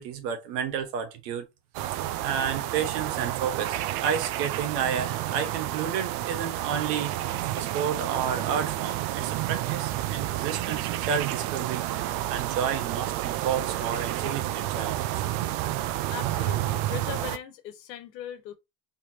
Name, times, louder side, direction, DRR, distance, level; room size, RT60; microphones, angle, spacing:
voice 1, 0.0-1.5 2.2-15.4, right 8 dB, 75° right, 1.5 m, -31 dB
sound 1, 1.7-17.4, right 14 dB, 55° right, 0.6 m, -30 dB
voice 2, 16.1-18.5, left 10 dB, 90° left, 1.2 m, -39 dB
4.6 x 3.4 x 2.8 m
supercardioid pair, 130°, 49 cm